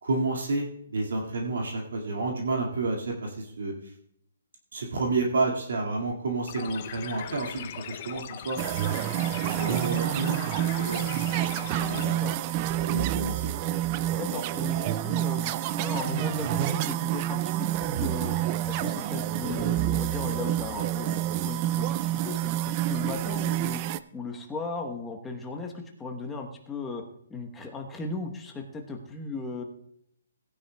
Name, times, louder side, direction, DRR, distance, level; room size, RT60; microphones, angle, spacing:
voice 1, 0.0-3.9 4.7-8.6 9.5-11.1 11.8-12.4 12.7-13.5, right 3 dB, 75° right, 0 dB, 2.0 m, -30 dB
sound 1, 6.5-12.0, left 11 dB, 30° left, 0.5 m, -40 dB
sound 2, 8.6-24.0, right 13 dB, 25° right, 0.3 m, -28 dB
voice 2, 12.0-12.4 14.2-18.3 18.7-23.8 24.1-27.0 27.3-29.6, left 3 dB, 10° left, 2 dB, 1.0 m, -36 dB
18.0 x 9.8 x 2.3 m, 0.70 s
hypercardioid pair, 165°, 0 cm